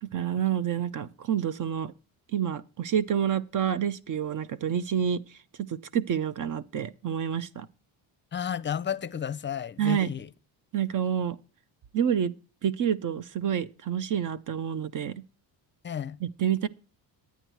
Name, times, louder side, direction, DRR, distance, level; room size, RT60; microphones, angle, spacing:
voice 1, 0.0-1.9 2.3-5.2 5.6-7.7 9.8-10.1 10.7-11.4 11.9-12.3 12.6-15.2 16.2-16.7, right 9 dB, 45° right, 0.7 m, -28 dB
voice 2, 8.3-10.3 15.8-16.2, left 8 dB, 25° left, 0.6 m, -32 dB
11.0 x 9.2 x 4.6 m
cardioid pair, 120°, 46 cm